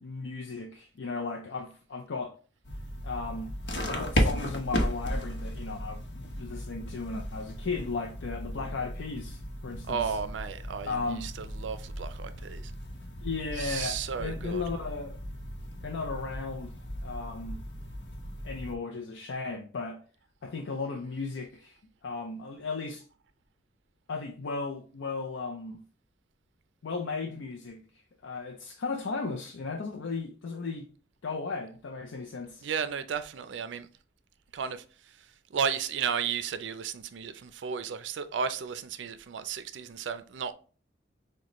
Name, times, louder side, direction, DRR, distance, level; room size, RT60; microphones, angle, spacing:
voice 1, 0.0-2.4 3.0-3.5 3.9-10.2 10.8-11.3 13.2-15.2 15.8-16.7 17.0-17.6 18.4-20.0 20.4-23.1 24.1-25.8 26.8-27.8 28.2-30.9 31.2-32.6, left 4 dB, 90° left, 0.5 m, -35 dB
sound 1, 2.6-18.8, equal, 70° left, 0.9 m, -35 dB
voice 2, 9.9-12.7 13.5-14.6 32.6-33.9 34.5-34.8 35.5-40.5, right 6 dB, 75° right, 0.4 m, -34 dB
6.4 x 2.2 x 3.0 m
head